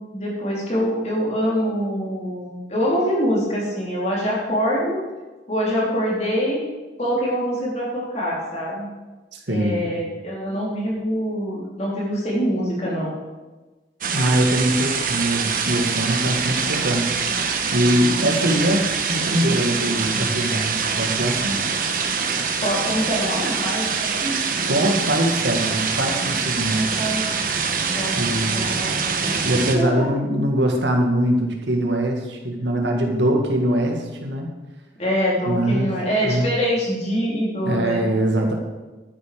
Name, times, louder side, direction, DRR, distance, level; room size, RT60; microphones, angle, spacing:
voice 1, 0.0-5.0 5.5-6.6 7.0-8.9 9.5-13.1 22.6-24.5 26.7-27.2 28.0-28.1 28.5-30.4 35.0-38.1, equal, 35° left, -4 dB, 3.9 m, -24 dB
voice 2, 9.3-9.9 14.1-17.3 17.7-21.8 24.7-26.8 28.2-28.6 29.4-34.5 35.5-35.9 36.2-36.5 37.7-38.5, right 1 dB, 70° right, 2 dB, 2.0 m, -22 dB
sound 1, 14.0-29.8, right 5 dB, 50° right, 1.3 m, -24 dB
12.5 x 9.7 x 5.1 m, 1.2 s
head